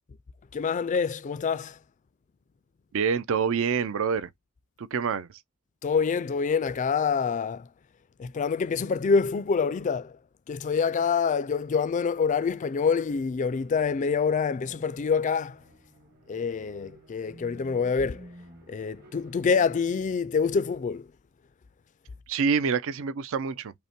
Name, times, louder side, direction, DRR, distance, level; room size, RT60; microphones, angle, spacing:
voice 1, 0.5-1.8 5.8-7.7 8.2-10.2 10.5-15.6 16.3-18.3 18.7-21.1, left 5 dB, 35° left, 0.3 m, -26 dB
voice 2, 2.9-4.3 4.8-5.4 22.3-23.7, right 6 dB, 65° right, 0.5 m, -26 dB
sound 1, 13.0-20.7, equal, 45° right, 1.4 m, -53 dB
5.4 x 2.1 x 4.3 m
head